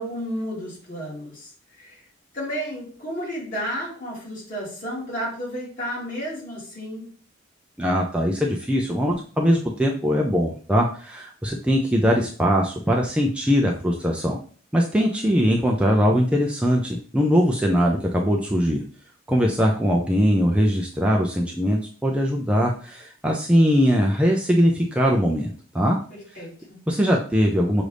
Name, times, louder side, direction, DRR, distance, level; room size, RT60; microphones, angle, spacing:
voice 1, 0.0-2.0 2.3-7.1 26.1-26.8, equal, 45° left, -5 dB, 2.5 m, -32 dB
voice 2, 7.8-14.4 14.7-18.8 19.3-26.0 26.9-27.8, equal, 5° right, -1 dB, 0.4 m, -21 dB
6.1 x 2.6 x 3.3 m, 0.42 s
head